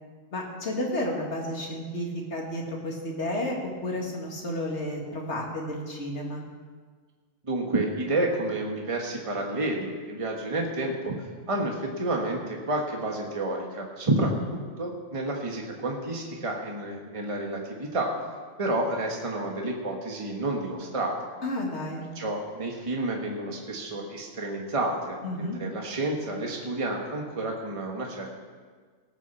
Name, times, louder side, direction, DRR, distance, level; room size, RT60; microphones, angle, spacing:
voice 1, 0.3-6.4 21.4-22.0 25.2-25.6, left 1 dB, 65° left, -1 dB, 2.4 m, -31 dB
voice 2, 7.4-11.2 11.5-18.1 18.6-21.1 22.1-28.3, right 2 dB, 25° right, 0 dB, 1.4 m, -30 dB
18.0 x 6.0 x 7.0 m, 1.5 s
omnidirectional pair, 1.3 m